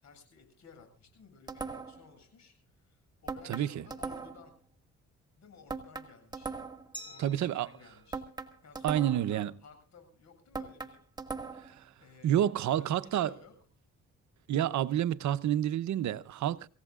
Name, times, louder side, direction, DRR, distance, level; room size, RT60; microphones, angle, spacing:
voice 1, 0.0-4.5 5.4-6.5 7.1-11.0 12.0-13.5, left 5 dB, 65° left, 7.5 m, -56 dB
sound 1, 1.5-2.1 3.3-4.5 5.7-6.9 8.1-9.3 10.5-11.8, right 4 dB, 15° right, 1.8 m, -39 dB
voice 2, 3.5-3.8 7.2-7.7 8.8-9.5 11.7-11.8 12.2-13.3 14.5-16.7, right 11 dB, 70° right, 0.8 m, -29 dB
Glass, 6.9-9.7, equal, 15° left, 2.6 m, -51 dB
27.0 x 16.5 x 2.5 m
cardioid pair, 90°, 30 cm